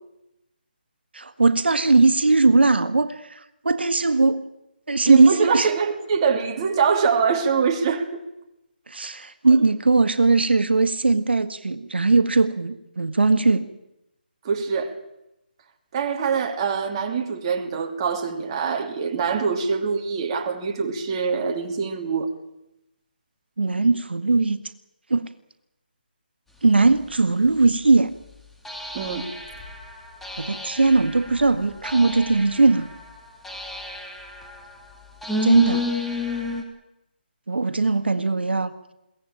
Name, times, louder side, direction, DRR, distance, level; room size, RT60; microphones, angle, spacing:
voice 1, 1.1-4.5 4.9-5.7 8.9-13.7 23.6-24.6 25.1-25.3 26.6-28.1 30.4-32.9 35.4-35.9 37.5-38.7, right 3 dB, 85° right, 10 dB, 1.6 m, -19 dB
voice 2, 5.0-8.2 14.4-14.9 15.9-22.3 28.9-29.3, right 6 dB, 25° right, 3 dB, 2.8 m, -24 dB
sound 1, 27.1-27.2 28.6-36.6, left 2 dB, ahead, 2.2 m, -32 dB
22.5 x 17.5 x 8.9 m, 0.89 s
hypercardioid pair, 165°, 6 cm